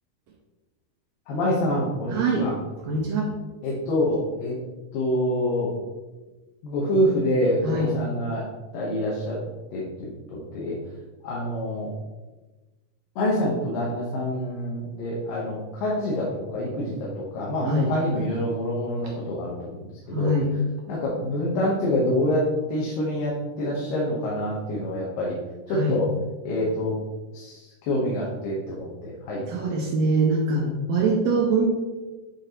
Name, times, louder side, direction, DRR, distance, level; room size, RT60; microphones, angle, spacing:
voice 1, 1.3-2.5 3.6-4.6 4.9-5.7 6.6-8.5 8.7-9.4 9.7-10.8 11.2-11.9 13.2-20.3 20.9-25.4 25.7-26.1 26.4-27.0 27.3-29.4 30.6-30.7, left 1 dB, 85° left, -5 dB, 2.7 m, -26 dB
voice 2, 2.1-2.5 2.8-3.3 7.6-7.9 17.6-17.9 20.1-20.5 25.7-26.0 29.5-31.7, right 2 dB, 80° right, -1 dB, 1.5 m, -23 dB
8.5 x 3.9 x 2.9 m, 1.2 s
omnidirectional pair, 3.9 m